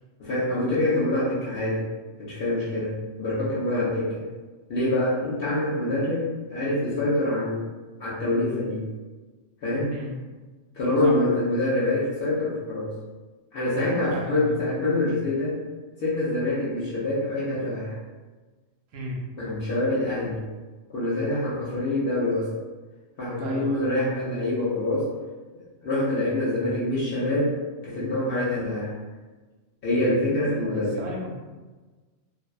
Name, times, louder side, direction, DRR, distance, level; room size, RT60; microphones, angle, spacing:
voice 1, 0.2-1.9 2.2-4.2 4.7-7.7 8.0-8.9 9.6-9.9 10.7-13.0 13.5-15.6 16.0-18.0 19.4-20.4 20.9-22.5 23.2-25.1 25.8-27.5 27.8-28.9 29.8-31.0, left 1 dB, 60° left, -8 dB, 0.7 m, -25 dB
voice 2, 14.1-14.6 18.9-19.2 23.4-23.8 30.4-31.3, right 1 dB, 85° right, -2 dB, 1.0 m, -35 dB
2.5 x 2.1 x 2.3 m, 1.3 s
omnidirectional pair, 1.3 m